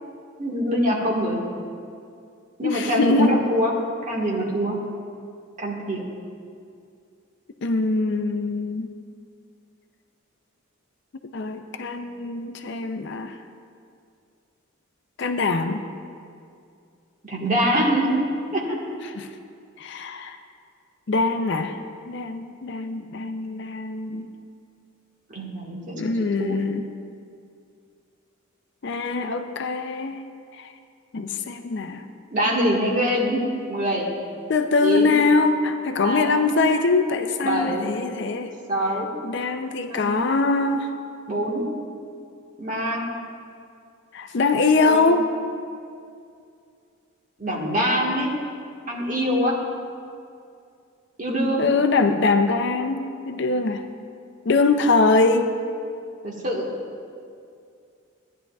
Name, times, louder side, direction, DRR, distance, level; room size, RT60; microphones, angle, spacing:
voice 1, 0.4-1.4 2.6-3.7 4.1-4.7 5.6-6.0 17.3-18.2 18.5-18.8 25.3-26.6 32.3-33.4 33.7-34.1 34.8-35.1 36.0-36.4 37.4-37.9 38.7-39.1 39.9-40.1 41.3-41.6 42.6-43.1 44.8-45.1 47.4-48.3 48.9-49.6 51.2-51.7 56.2-56.7, equal, 40° right, -3 dB, 1.5 m, -24 dB
voice 2, 2.6-3.4 7.6-8.9 11.3-13.3 15.2-15.8 19.2-19.3 19.8-20.4 21.1-21.8 22.1-24.3 26.0-26.8 28.8-30.2 30.6-30.7 31.1-32.0 34.5-38.5 39.2-40.9 44.1-45.3 51.6-53.8 54.5-55.5, left 3 dB, 55° left, 7 dB, 0.5 m, -22 dB
15.5 x 10.0 x 2.3 m, 2.4 s
head